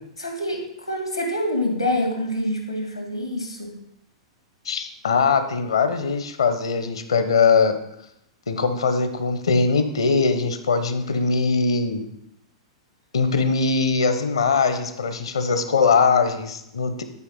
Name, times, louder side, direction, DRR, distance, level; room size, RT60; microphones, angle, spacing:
voice 1, 0.2-3.7, left 1 dB, 90° left, 1 dB, 2.6 m, -26 dB
voice 2, 4.7-7.8 8.5-12.0 13.1-17.0, left 5 dB, 70° left, 9 dB, 1.1 m, -21 dB
11.0 x 4.9 x 5.5 m, 0.80 s
figure-of-eight pair, 100°, 3 cm